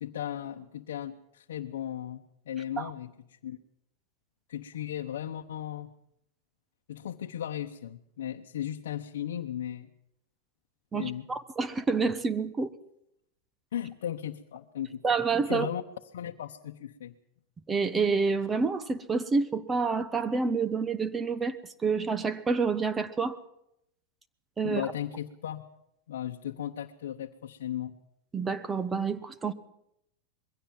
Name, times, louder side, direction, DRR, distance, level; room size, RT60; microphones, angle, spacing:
voice 1, 0.0-3.6 4.5-5.9 6.9-9.9 10.9-11.3 13.7-15.0 15.4-15.8 16.1-17.1 24.6-25.6 26.1-28.0, left 11 dB, 85° left, 0.9 m, -36 dB
voice 2, 10.9-12.7 15.0-15.7 17.7-21.6 21.8-23.4 24.6-24.8 28.3-29.5, right 4 dB, 15° right, 1.1 m, -28 dB
21.5 x 16.5 x 7.4 m
hypercardioid pair, 125°, 0 cm